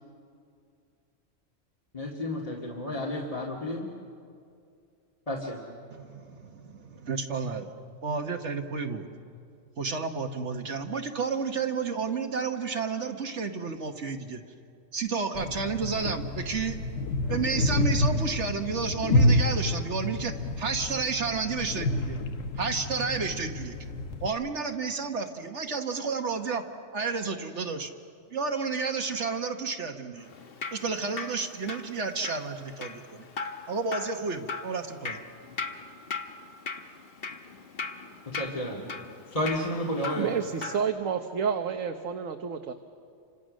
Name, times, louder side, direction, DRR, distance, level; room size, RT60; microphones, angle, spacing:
voice 1, 1.9-3.9 5.3-5.6 38.3-38.8 39.3-40.3, left 1 dB, 25° left, 2.2 m, -31 dB
voice 2, 5.9-7.7 8.0-9.0 9.8-14.4 14.9-16.8 17.3-22.2 22.6-23.7 24.2-26.6 26.9-27.9 28.3-30.3 30.7-33.2 33.7-35.2, right 5 dB, 60° right, 1.5 m, -31 dB
sound 1, 15.3-24.3, left 1 dB, 75° left, 1.5 m, -28 dB
Drip, 30.2-40.8, left 4 dB, 50° left, 1.3 m, -39 dB
voice 3, 40.2-42.7, right 7 dB, 75° right, 1.4 m, -30 dB
29.5 x 26.0 x 6.4 m
omnidirectional pair, 1.4 m